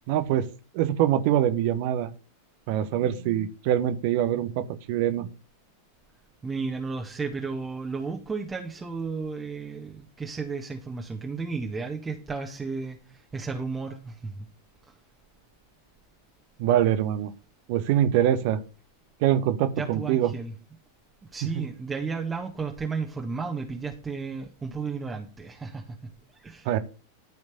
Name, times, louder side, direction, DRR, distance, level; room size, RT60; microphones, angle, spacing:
voice 1, 0.1-0.5 0.7-2.1 2.7-5.3 16.6-17.3 17.7-18.6 19.2-20.3 21.4-21.6 26.6-26.8, right 11 dB, 45° right, 11 dB, 1.1 m, -24 dB
voice 2, 6.4-14.5 19.8-20.5 21.3-26.0 26.4-26.7, right 4 dB, 15° right, 1 dB, 1.6 m, -33 dB
13.5 x 5.2 x 6.8 m, 0.33 s
figure-of-eight pair, 90°, 0 cm